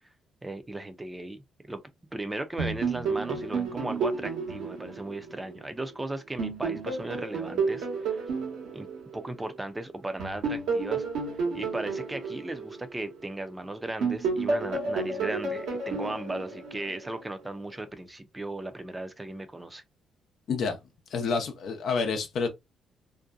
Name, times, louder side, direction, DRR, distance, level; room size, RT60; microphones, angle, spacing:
voice 1, 0.4-1.8 2.1-8.3 8.7-8.9 9.1-11.0 11.5-19.8, right 2 dB, 20° right, 0.5 m, -36 dB
sound 1, 2.6-5.9 6.4-9.6 10.2-13.5 14.0-17.2, right 4 dB, 85° right, 1.1 m, -31 dB
voice 2, 21.1-22.5, left 5 dB, 70° left, 0.6 m, -28 dB
2.6 x 2.2 x 2.4 m
supercardioid pair, 70°, 0 cm